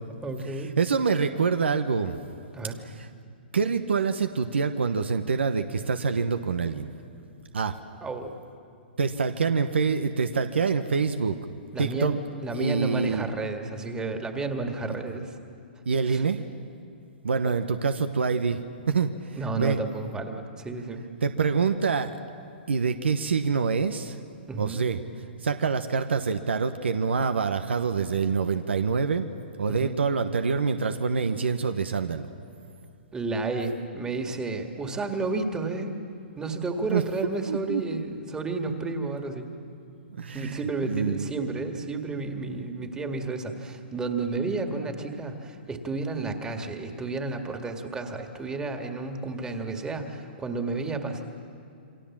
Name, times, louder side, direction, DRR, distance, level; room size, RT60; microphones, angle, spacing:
voice 1, 0.2-0.7 2.5-2.8 8.0-8.4 11.7-15.4 16.1-16.2 17.4-17.5 19.4-21.0 24.5-24.8 29.7-29.9 33.1-35.9 36.4-39.5 40.3-51.2, right 3 dB, 10° right, 4 dB, 2.0 m, -31 dB
voice 2, 0.8-2.2 2.8-3.1 3.5-6.9 7.5-7.8 9.0-11.4 11.8-12.1 12.5-13.3 15.8-16.4 17.2-18.6 18.9-19.8 21.2-22.2 22.7-24.2 24.6-25.0 25.4-29.3 29.6-32.3 36.9-37.0 37.5-38.0 40.2-40.6 40.8-41.3 42.5-42.6, right 5 dB, 90° right, 8 dB, 1.1 m, -26 dB
28.5 x 23.0 x 7.4 m, 2.5 s
hypercardioid pair, 140°, 6 cm